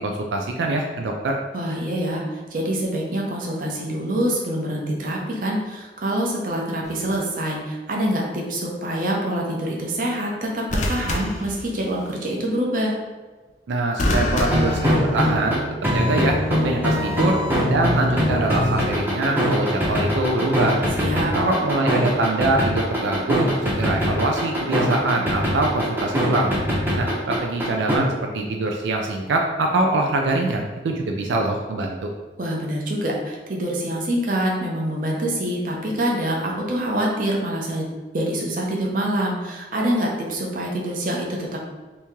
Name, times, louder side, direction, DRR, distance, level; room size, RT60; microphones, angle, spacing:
voice 1, 0.0-1.4 13.7-17.4 17.7-20.8 21.3-26.5 26.9-32.1, right 2 dB, 90° right, 2 dB, 0.4 m, -24 dB
voice 2, 1.5-12.9 21.0-21.3 32.4-37.8 38.1-41.6, right 1 dB, 50° right, -2 dB, 0.7 m, -25 dB
sound 1, 6.8-7.2 10.7-12.2 14.0-15.6 16.8-17.2, left 1 dB, 45° left, 0.5 m, -27 dB
sound 2, 14.4-28.0, equal, 10° right, 0.6 m, -22 dB
2.9 x 2.8 x 3.5 m, 1.3 s
head